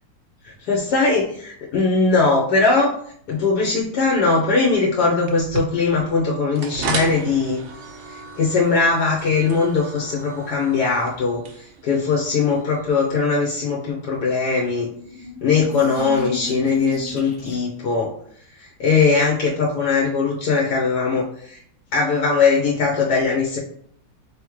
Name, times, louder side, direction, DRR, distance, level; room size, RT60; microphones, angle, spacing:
voice 1, 0.4-3.0 3.3-7.6 8.1-14.9 15.4-18.1 18.6-21.6 21.9-23.6, left 4 dB, 70° left, -2 dB, 1.3 m, -20 dB
sound 1, 5.3-13.2, right 4 dB, 60° right, 0.8 m, -34 dB
sound 2, 14.9-17.9, equal, 55° left, 1.0 m, -35 dB
3.6 x 3.5 x 3.1 m, 0.64 s
omnidirectional pair, 1.9 m